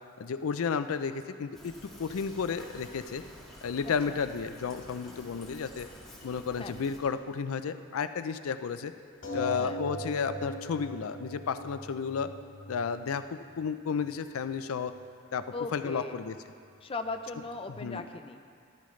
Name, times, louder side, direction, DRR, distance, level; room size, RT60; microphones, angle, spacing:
voice 1, 0.2-3.2 3.6-5.9 6.2-8.9 9.3-12.3 12.7-14.9 15.3-15.4 15.7-16.4 17.8-18.0, left 6 dB, 85° left, 11 dB, 0.4 m, -32 dB
Fill (with liquid), 1.5-7.0, equal, ahead, 1.9 m, -50 dB
voice 2, 3.8-4.2 6.6-6.7 9.6-9.8 15.5-16.2 16.8-18.5, left 3 dB, 25° left, 6 dB, 0.5 m, -38 dB
sound 1, 9.2-14.2 15.0-15.1 15.4-15.5, right 1 dB, 65° left, 2.1 m, -40 dB
14.0 x 12.5 x 3.2 m, 2.2 s
head